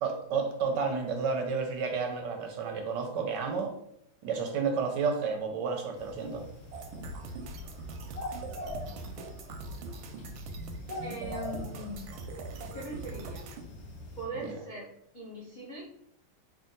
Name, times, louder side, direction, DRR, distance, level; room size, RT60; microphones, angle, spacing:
voice 1, 0.0-3.7 4.2-6.5 14.4-14.6, right 5 dB, 75° right, 4 dB, 1.1 m, -31 dB
sound 1, 5.9-14.3, left 1 dB, 55° left, 1.3 m, -44 dB
sound 2, 6.7-13.6, right 2 dB, 90° right, 1.4 m, -41 dB
voice 2, 8.4-8.9 11.0-12.1 12.6-13.5 14.2-15.8, right 1 dB, 75° left, -7 dB, 0.4 m, -41 dB
3.5 x 2.5 x 3.7 m, 0.73 s
omnidirectional pair, 2.1 m